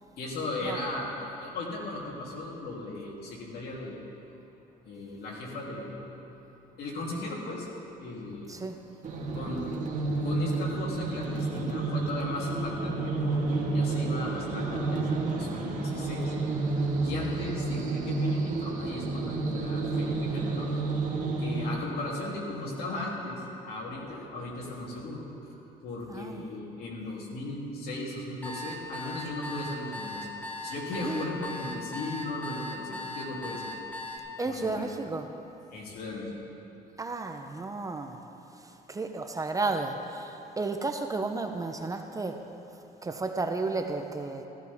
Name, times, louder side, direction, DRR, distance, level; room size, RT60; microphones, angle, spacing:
voice 1, 0.2-4.0 4.8-6.4 6.8-7.7 8.0-8.5 9.3-9.8 10.2-16.3 17.0-20.7 21.4-23.4 23.6-25.2 25.5-30.3 30.6-33.8 34.4-34.9 35.7-36.3, left 2 dB, 70° left, -3 dB, 3.0 m, -37 dB
voice 2, 8.5-8.8 26.1-26.5 31.0-31.3 34.4-35.3 37.0-38.2 38.6-42.4 43.0-44.5, right 3 dB, 20° right, 5 dB, 0.7 m, -33 dB
sound 1, 9.0-21.7, right 3 dB, 50° right, 1.8 m, -30 dB
sound 2, 28.4-34.2, left 1 dB, 10° left, 1.4 m, -38 dB
15.0 x 14.0 x 3.6 m, 2.9 s
cardioid pair, 110°, 17 cm